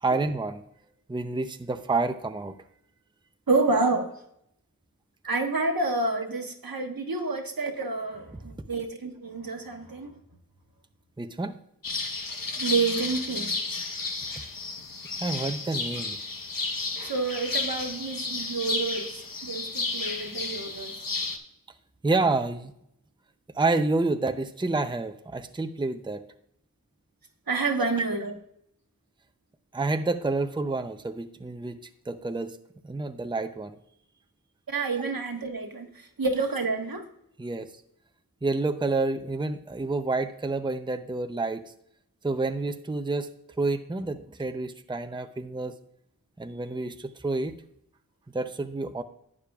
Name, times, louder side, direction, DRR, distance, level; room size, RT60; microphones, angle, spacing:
voice 1, 0.0-0.6 1.1-2.6 11.2-11.6 15.2-16.2 18.7-19.1 22.0-22.7 23.5-26.2 27.8-28.2 29.7-31.8 32.1-32.6 32.8-33.8 35.0-35.1 37.4-37.7 38.4-41.7 42.2-43.3 43.6-45.8 46.4-47.6 48.3-49.0, right 3 dB, 15° right, 8 dB, 0.6 m, -29 dB
voice 2, 3.5-4.1 5.2-10.2 12.6-13.8 17.0-21.1 27.5-28.3 34.7-37.0, right 3 dB, 80° right, 3 dB, 1.3 m, -29 dB
sound 1, 11.8-21.4, left 3 dB, 75° left, 1.1 m, -32 dB
11.5 x 8.6 x 2.4 m, 0.74 s
wide cardioid pair, 45°, 35 cm